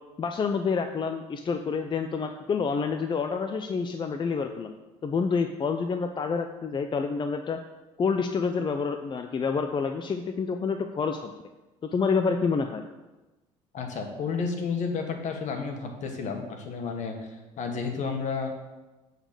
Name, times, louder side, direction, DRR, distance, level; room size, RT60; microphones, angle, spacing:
voice 1, 0.2-4.7 5.0-7.6 8.0-11.3 11.8-12.8, left 5 dB, 35° left, 6 dB, 0.6 m, -28 dB
voice 2, 13.7-18.5, left 5 dB, 60° left, 4 dB, 1.5 m, -31 dB
7.9 x 4.1 x 6.6 m, 1.1 s
supercardioid pair, 70°, 14 cm